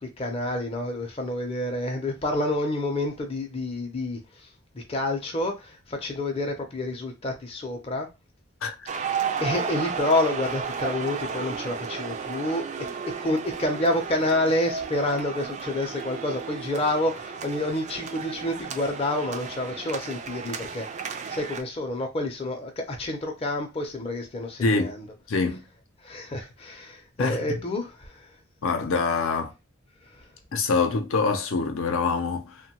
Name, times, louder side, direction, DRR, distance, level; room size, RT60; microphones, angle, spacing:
voice 1, 0.0-4.5 4.7-8.1 9.0-12.9 13.2-25.1 26.0-28.3 30.1-30.2, left 1 dB, 30° left, 0.5 m, -29 dB
sound 1, 8.9-21.6, right 6 dB, 35° right, 0.3 m, -33 dB
voice 2, 24.6-24.9 25.3-25.6 27.2-27.4 28.6-29.5 30.5-32.6, left 4 dB, 75° left, 0.6 m, -25 dB
2.9 x 2.2 x 2.8 m
head